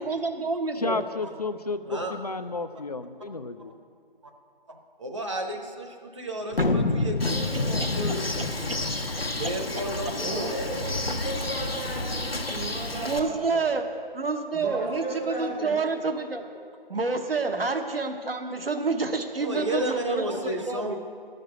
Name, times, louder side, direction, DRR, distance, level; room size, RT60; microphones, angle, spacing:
voice 1, 0.0-1.0 7.3-7.4 9.2-9.3 13.1-13.9 14.1-16.4 16.9-21.0, right 4 dB, 75° right, 6 dB, 1.1 m, -28 dB
voice 2, 0.8-3.7, left 3 dB, 45° left, 11 dB, 0.5 m, -32 dB
voice 3, 4.7-8.5 9.4-10.6 19.4-21.0, right 1 dB, 30° right, 2 dB, 0.9 m, -32 dB
sound 1, 6.5-10.2, left 3 dB, 65° left, 0.9 m, -28 dB
Bird, 7.2-13.2, left 2 dB, 90° left, 1.2 m, -31 dB
voice 4, 10.2-13.6 14.5-15.7, right 2 dB, 5° right, -7 dB, 0.9 m, -35 dB
11.0 x 6.7 x 9.2 m, 2.1 s
figure-of-eight pair, 160°, 29 cm